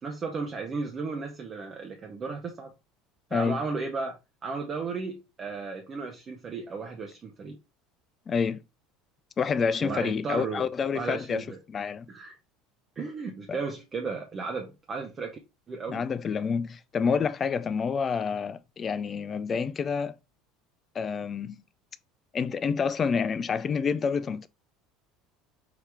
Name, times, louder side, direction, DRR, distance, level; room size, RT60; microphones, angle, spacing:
voice 1, 0.0-2.7 3.3-7.6 9.8-10.6 10.9-11.6 12.1-12.3 13.0-15.4 15.7-16.0, right 4 dB, 35° right, 0.8 m, -34 dB
voice 2, 3.3-3.6 8.3-8.6 9.4-12.1 13.5-13.6 15.9-20.2 20.9-21.6 22.3-24.5, left 6 dB, 35° left, 0.3 m, -28 dB
4.9 x 2.8 x 3.4 m
hypercardioid pair, 70°, 0 cm